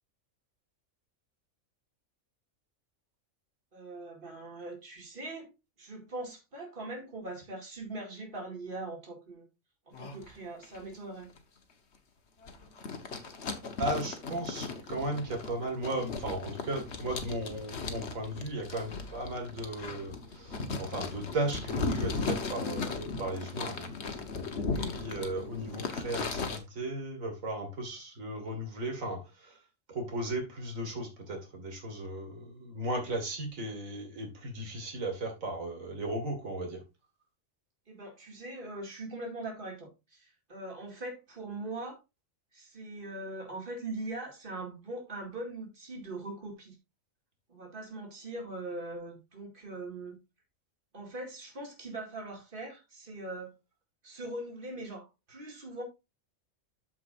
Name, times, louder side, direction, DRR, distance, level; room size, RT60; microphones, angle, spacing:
voice 1, 3.7-5.5 5.8-9.5 9.9-11.3 37.9-42.0 42.5-46.8 47.5-50.2 50.9-53.5 54.0-55.8, right 2 dB, 40° right, 2.6 m, -41 dB
sound 1, 9.9-10.3 10.6-10.9 11.4-11.5 12.4-26.6, left 4 dB, 60° left, 1.4 m, -37 dB
voice 2, 13.8-23.9 24.5-29.6 29.9-36.8, right 1 dB, 90° right, 2.4 m, -36 dB
13.0 x 4.9 x 2.5 m
omnidirectional pair, 1.4 m